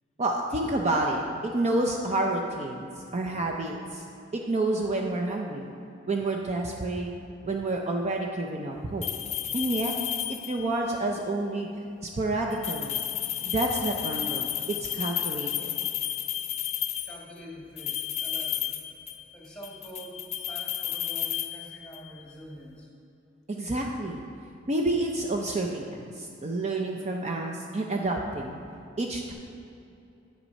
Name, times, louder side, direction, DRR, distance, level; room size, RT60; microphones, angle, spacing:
voice 1, 0.2-4.1 4.3-5.7 6.1-7.1 7.4-9.0 9.5-9.9 10.3-11.7 12.0-13.0 13.4-15.7 23.5-24.2 24.7-28.6 29.0-29.3, right 2 dB, 35° right, 1 dB, 0.5 m, -29 dB
sound 1, 9.0-10.8 12.5-17.2 17.8-19.3 19.6-22.1, left 11 dB, 35° left, 0.5 m, -32 dB
voice 2, 17.0-18.7 19.1-22.9, equal, 5° left, -4 dB, 1.8 m, -45 dB
8.6 x 6.0 x 5.3 m, 2.7 s
head